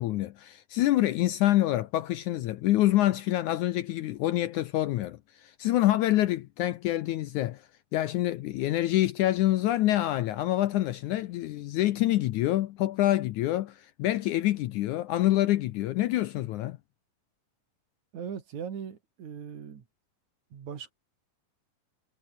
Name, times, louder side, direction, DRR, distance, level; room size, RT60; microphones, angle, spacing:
voice 1, 0.0-7.6 7.9-16.8, left 15 dB, 75° left, 1.9 m, -26 dB
voice 2, 18.1-19.8 20.5-20.9, right 7 dB, 55° right, 3.6 m, -39 dB
omnidirectional pair, 4.1 m